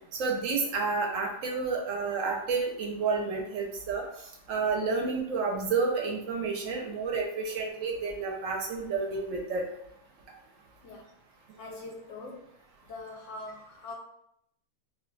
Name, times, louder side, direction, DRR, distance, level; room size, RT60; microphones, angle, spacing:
voice 1, 0.2-4.0 4.5-9.6, right 4 dB, 70° right, 0 dB, 0.9 m, -30 dB
voice 2, 11.6-12.5 12.8-13.9, left 2 dB, 70° left, -1 dB, 0.8 m, -43 dB
2.3 x 2.2 x 3.8 m, 0.77 s
omnidirectional pair, 1.5 m